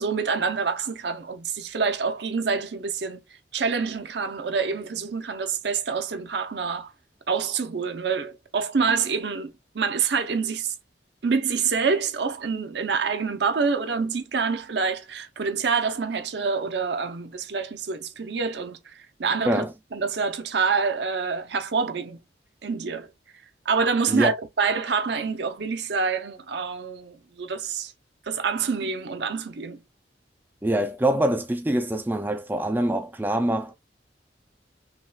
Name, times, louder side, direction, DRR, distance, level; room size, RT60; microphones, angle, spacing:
voice 1, 0.0-3.2 3.5-6.9 7.3-10.7 11.2-18.9 19.2-19.6 19.9-22.2 22.6-23.1 23.7-27.9 28.3-29.8, right 5 dB, 65° right, 0.6 m, -26 dB
voice 2, 30.6-33.7, right 1 dB, 10° right, 0.4 m, -24 dB
5.7 x 2.4 x 2.2 m
head